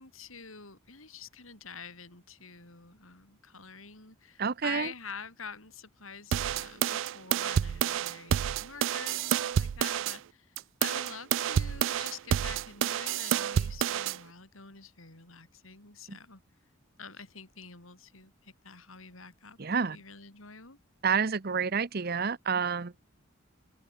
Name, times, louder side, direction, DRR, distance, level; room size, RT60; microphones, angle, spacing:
voice 1, 0.0-10.5 10.8-16.4 17.0-20.8, left 5 dB, 90° left, 7.1 m, -47 dB
voice 2, 4.4-4.9 16.1-16.2 19.6-20.0 21.0-23.0, right 6 dB, 50° right, 0.8 m, -29 dB
sound 1, 6.3-10.2 10.6-14.2, right 9 dB, 65° right, 0.3 m, -29 dB
open air
head